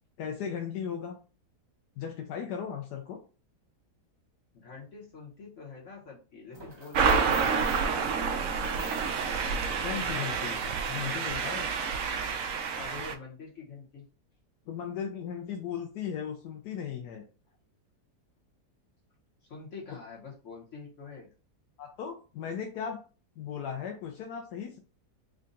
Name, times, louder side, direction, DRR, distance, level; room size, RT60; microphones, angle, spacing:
voice 1, 0.2-1.2 2.0-3.2 9.8-10.6 10.9-11.7 14.7-17.2 21.8-23.0 23.4-24.8, left 8 dB, 85° left, 3 dB, 1.2 m, -36 dB
voice 2, 4.5-7.6 12.8-14.0 19.5-21.3, left 4 dB, 55° left, -3 dB, 1.2 m, -46 dB
sound 1, 6.5-11.2, right 1 dB, 25° right, 0.5 m, -48 dB
sound 2, 6.9-13.2, right 5 dB, 70° right, 0.9 m, -29 dB
3.7 x 2.2 x 3.8 m, 0.35 s
omnidirectional pair, 1.7 m